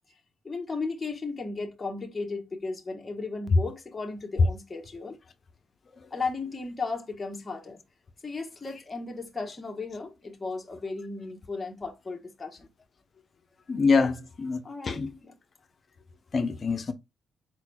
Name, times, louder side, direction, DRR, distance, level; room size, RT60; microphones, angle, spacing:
voice 1, 0.4-5.2 6.1-7.8 8.2-12.7 13.9-14.1 14.6-15.4, left 3 dB, 25° left, 1.2 m, -35 dB
voice 2, 13.7-14.6 14.9-15.1 16.3-16.9, left 4 dB, 45° left, 0.7 m, -25 dB
4.6 x 4.4 x 2.2 m
supercardioid pair, 65°, 0 cm